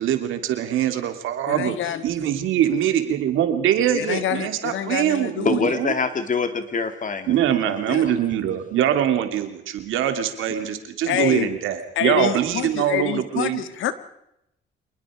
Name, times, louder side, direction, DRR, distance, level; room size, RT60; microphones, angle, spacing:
voice 1, 0.0-1.8 2.0-5.9 7.3-13.6, right 10 dB, 90° right, 7 dB, 2.7 m, -23 dB
voice 2, 1.5-2.0 3.9-5.6 7.9-8.1 11.0-11.5 11.9-13.9, left 10 dB, 80° left, 12 dB, 1.7 m, -26 dB
voice 3, 5.4-8.1, left 5 dB, 40° left, 8 dB, 2.8 m, -26 dB
26.0 x 20.5 x 5.0 m, 0.81 s
cardioid pair, 90°, 20 cm